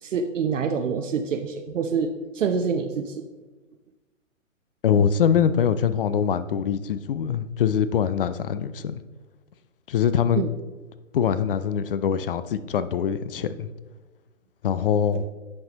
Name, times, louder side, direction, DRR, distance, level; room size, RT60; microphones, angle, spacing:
voice 1, 0.0-3.3 10.4-10.5, right 6 dB, 70° right, 5 dB, 0.7 m, -26 dB
voice 2, 4.8-9.0 9.9-10.4 11.1-13.7 14.6-15.2, left 8 dB, 45° left, 13 dB, 0.4 m, -23 dB
9.5 x 5.5 x 2.9 m, 1.2 s
hypercardioid pair, 135°, 40 cm